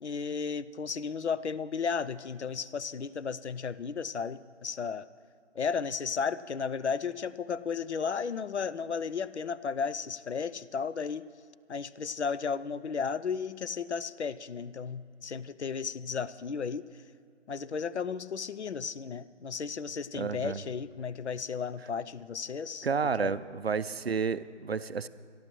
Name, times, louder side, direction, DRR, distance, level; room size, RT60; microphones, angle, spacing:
voice 1, 0.0-5.1 5.6-11.2 11.7-16.8 17.5-22.9 23.2-23.3, left 6 dB, 70° left, 16 dB, 0.6 m, -34 dB
voice 2, 20.1-20.6 22.8-25.1, right 5 dB, 60° right, 14 dB, 0.5 m, -31 dB
25.5 x 12.5 x 3.1 m, 2.4 s
figure-of-eight pair, 175°, 35 cm